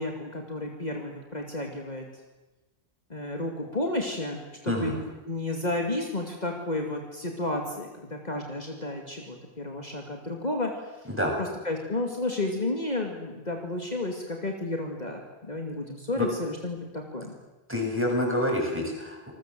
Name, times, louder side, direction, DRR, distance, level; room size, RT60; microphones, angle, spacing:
voice 1, 0.0-2.0 3.1-10.7 11.0-11.1 11.4-17.4, left 2 dB, 40° left, 2 dB, 2.6 m, -32 dB
voice 2, 4.7-5.0 11.1-11.3 16.2-16.3 17.7-19.3, left 1 dB, 10° right, -1 dB, 7.8 m, -27 dB
28.5 x 20.5 x 7.7 m, 1.1 s
omnidirectional pair, 1.1 m